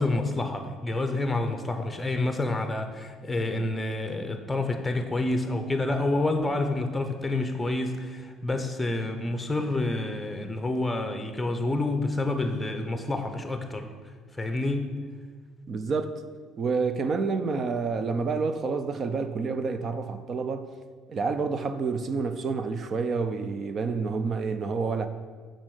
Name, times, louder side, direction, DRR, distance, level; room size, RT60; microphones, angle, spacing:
voice 1, 0.0-13.9 14.3-14.9, left 2 dB, 10° left, 0.8 m, -28 dB
voice 2, 15.7-16.1 16.6-20.7 21.1-25.1, right 4 dB, 40° right, 0.5 m, -28 dB
7.4 x 5.3 x 6.5 m
cardioid pair, 135°, 0 cm